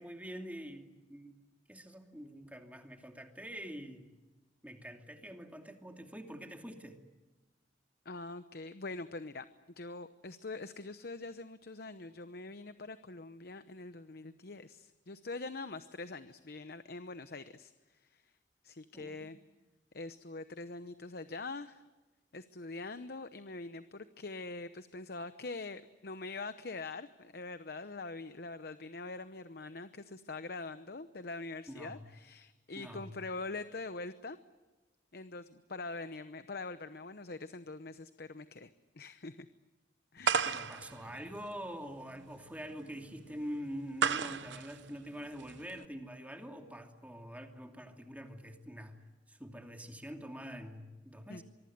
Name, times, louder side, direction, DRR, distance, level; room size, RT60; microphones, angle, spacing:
voice 1, 0.0-1.3 1.7-4.1 4.6-7.0 18.9-19.4 31.7-32.1 32.7-33.1 40.4-51.4, equal, 10° right, 4 dB, 2.6 m, -45 dB
voice 2, 8.0-9.5 9.8-18.3 18.6-19.4 19.9-21.8 22.3-34.4 35.1-39.5 40.1-40.5 51.3-51.4, left 3 dB, 60° left, 11 dB, 0.9 m, -44 dB
sound 1, 40.2-45.9, right 6 dB, 85° right, 1.0 m, -35 dB
24.5 x 23.5 x 9.5 m, 1.2 s
head